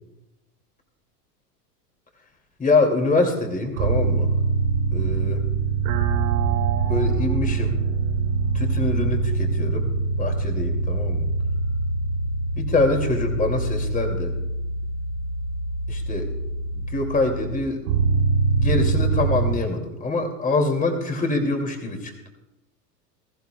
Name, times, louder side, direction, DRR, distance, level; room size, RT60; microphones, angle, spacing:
voice 1, 2.6-4.3 4.9-5.4 6.9-7.8 8.5-11.3 12.5-14.3 15.9-16.3 16.7-17.8 18.5-22.3, left 3 dB, 15° left, 4 dB, 2.5 m, -25 dB
sound 1, 3.7-19.6, right 4 dB, 60° right, 3.1 m, -24 dB
21.5 x 14.0 x 2.3 m, 0.96 s
hypercardioid pair, 100°, 50 cm